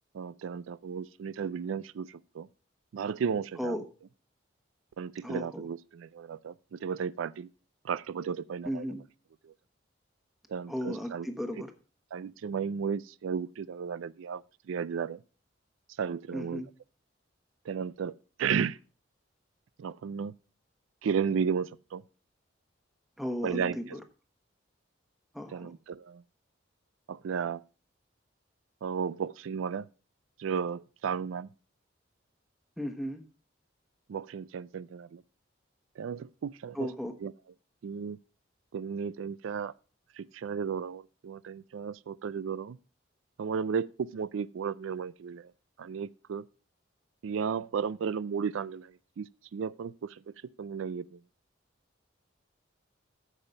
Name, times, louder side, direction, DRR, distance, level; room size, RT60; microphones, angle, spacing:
voice 1, 0.1-2.5 2.9-3.8 5.0-7.5 7.8-8.8 9.4-9.5 10.5-11.3 12.1-14.4 14.7-15.2 16.0-16.6 17.7-18.1 18.4-18.8 19.8-20.3 21.0-22.0 23.4-24.0 25.5-26.2 27.1-27.6 28.8-29.9 30.4-31.5 34.1-35.2 36.0-36.9 37.2-37.3 37.8-38.2 38.7-39.7 40.2-42.8 43.4-45.5 45.8-46.5 47.2-51.2, right 6 dB, 85° right, 0.4 m, -34 dB
voice 2, 5.2-5.6 8.6-9.0 10.7-11.7 16.3-16.7 23.2-24.0 25.3-25.7 32.8-33.2 36.7-37.1, equal, ahead, 1.1 m, -35 dB
9.1 x 7.1 x 5.3 m
head